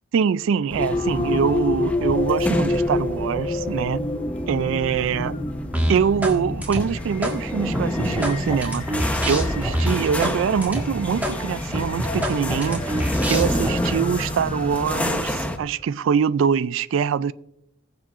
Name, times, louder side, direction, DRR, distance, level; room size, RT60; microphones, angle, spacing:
voice 1, 0.1-4.0 4.5-5.3 5.9-8.9 9.3-12.9 13.3-17.3, right 7 dB, 65° right, 0.3 m, -24 dB
sound 1, 0.7-15.3, left 2 dB, 30° left, 1.1 m, -30 dB
sound 2, 0.7-15.6, left 1 dB, 5° left, 0.8 m, -29 dB
sound 3, 5.7-6.4 6.6-7.4 7.7-10.4 10.6-10.8 11.2-11.4 11.7-13.7, equal, 10° right, 1.6 m, -25 dB
20.5 x 7.4 x 2.5 m
head